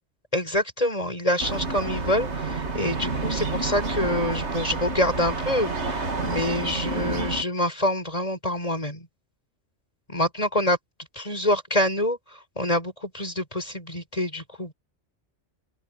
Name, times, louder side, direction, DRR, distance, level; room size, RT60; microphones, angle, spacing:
voice 1, 0.3-9.1 10.1-10.8 11.2-12.2 12.6-14.7, left 1 dB, 30° left, 7.1 m, -26 dB
sound 1, 1.4-7.4, right 3 dB, 75° right, 2.5 m, -29 dB
open air
omnidirectional pair, 1.2 m